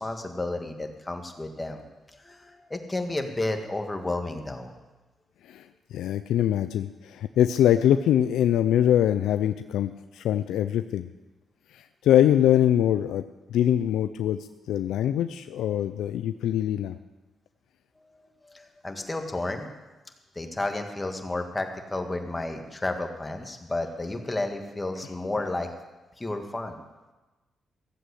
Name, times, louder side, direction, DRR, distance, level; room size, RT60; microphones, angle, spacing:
voice 1, 0.0-1.9 2.2-4.7 18.1-19.7 20.4-25.8 26.2-26.8, left 2 dB, 20° left, 5 dB, 1.9 m, -32 dB
voice 2, 5.9-11.1 11.7-13.2 13.5-14.4 14.7-17.0, left 11 dB, 90° left, 10 dB, 0.4 m, -23 dB
16.0 x 7.7 x 8.3 m, 1.1 s
cardioid pair, 80°, 0 cm